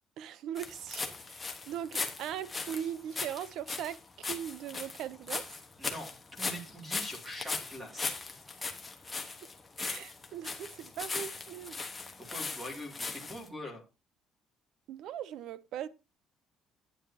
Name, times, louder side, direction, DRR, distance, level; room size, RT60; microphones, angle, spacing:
voice 1, 0.2-5.5 9.8-11.8 14.9-15.9, right 10 dB, 65° right, 0.6 m, -40 dB
sound 1, 0.6-13.5, left 4 dB, 15° left, 1.2 m, -39 dB
voice 2, 5.8-8.1 12.2-13.8, equal, 10° right, 2.6 m, -43 dB
12.0 x 9.4 x 2.8 m
cardioid pair, 170°, 0 cm